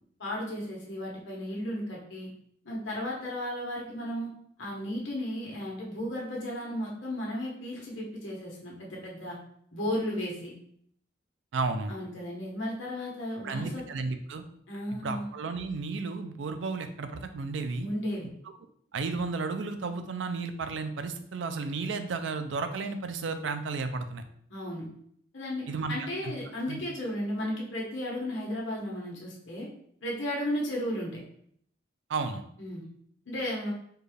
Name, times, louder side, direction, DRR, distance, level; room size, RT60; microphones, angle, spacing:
voice 1, 0.2-2.3 2.6-4.3 4.6-9.4 9.7-10.5 11.9-13.8 14.7-15.3 17.8-18.3 24.5-24.9 25.3-29.7 30.0-31.2 32.6-32.8 33.2-33.7, left 1 dB, 85° left, -3 dB, 1.3 m, -34 dB
voice 2, 11.5-11.9 13.4-14.4 15.0-17.9 18.9-24.2 25.7-26.3 26.7-26.8 32.1-32.4, right 4 dB, 80° right, 8 dB, 0.4 m, -33 dB
4.5 x 2.4 x 3.2 m, 0.65 s
head